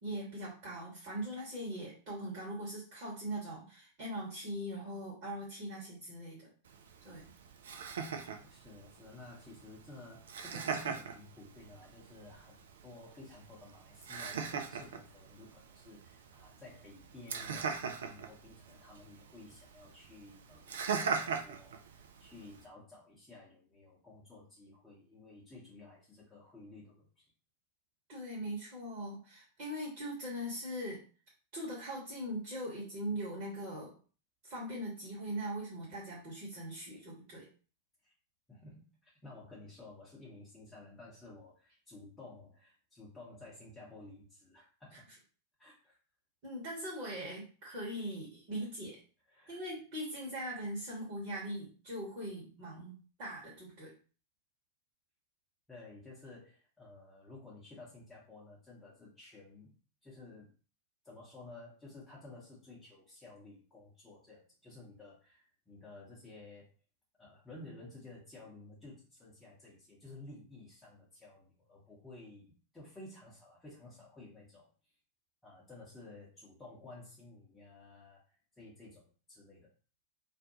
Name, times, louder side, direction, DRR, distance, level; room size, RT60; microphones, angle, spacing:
voice 1, 0.0-6.5 7.0-7.2 28.1-31.0 31.5-33.9 34.4-37.5 46.4-49.0 49.5-52.9 53.2-53.9, equal, 40° right, -6 dB, 1.1 m, -41 dB
Laughter, 6.7-22.7, right 6 dB, 65° right, 0.3 m, -41 dB
voice 2, 8.4-27.3 38.0-38.1 38.5-45.1 45.6-46.0 48.6-48.7 49.3-49.6 55.7-59.7 60.0-60.5 61.0-66.7 67.2-74.9 75.4-79.7, left 2 dB, 10° left, -6 dB, 0.9 m, -53 dB
2.5 x 2.1 x 2.8 m, 0.38 s
figure-of-eight pair, 90°, 0 cm